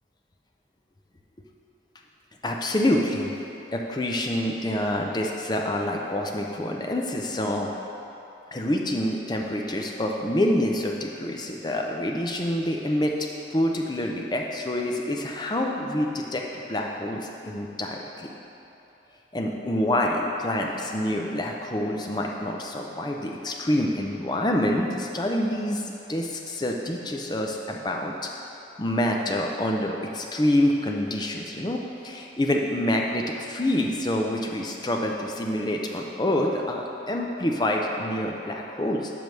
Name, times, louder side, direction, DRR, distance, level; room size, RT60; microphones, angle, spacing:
voice 1, 2.4-3.3 3.7-7.7 8.5-13.2 13.5-16.4 16.7-18.3 19.3-28.3 28.8-39.1, left 1 dB, 25° left, 1 dB, 0.6 m, -27 dB
6.1 x 5.3 x 6.1 m, 2.9 s
head